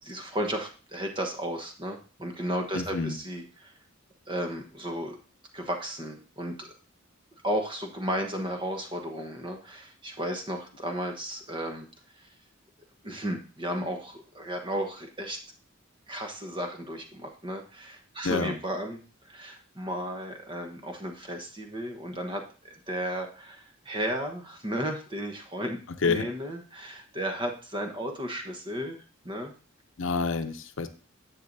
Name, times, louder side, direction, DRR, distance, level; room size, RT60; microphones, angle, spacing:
voice 1, 0.0-3.7 4.3-5.2 5.5-6.7 7.4-11.9 12.2-12.3 13.0-15.4 16.1-25.8 26.1-29.5, equal, 25° right, 4 dB, 1.1 m, -34 dB
voice 2, 2.7-3.2 18.2-18.6 26.0-26.3 30.0-30.9, left 4 dB, 70° left, 9 dB, 0.7 m, -28 dB
10.0 x 7.4 x 2.7 m, 0.36 s
head